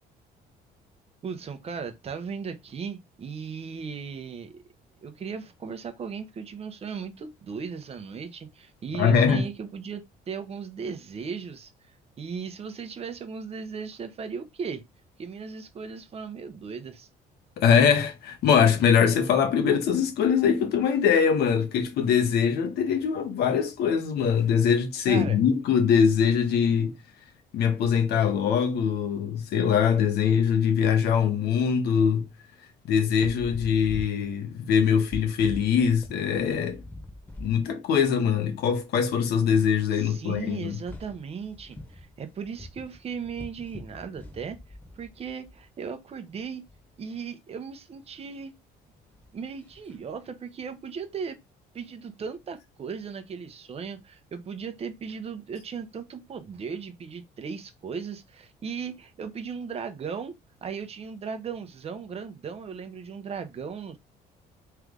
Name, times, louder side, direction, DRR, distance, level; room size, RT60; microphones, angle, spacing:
voice 1, 1.2-4.6 5.0-11.7 12.2-14.8 15.2-17.1 25.1-25.4 40.0-44.6 44.9-46.6 47.0-48.5 49.3-51.4 51.7-60.3 60.6-64.0, right 6 dB, 35° right, 0.8 m, -37 dB
voice 2, 9.0-9.5 17.6-26.9 27.5-32.3 32.9-36.8 37.4-40.8, left 7 dB, 75° left, 1.1 m, -22 dB
sound 1, 33.2-37.6 38.0-38.1 39.0-39.1 39.3-45.7 46.4-46.8 48.9-50.1, left 1 dB, 10° left, 1.4 m, -44 dB
3.3 x 3.3 x 3.7 m
cardioid pair, 110°, 17 cm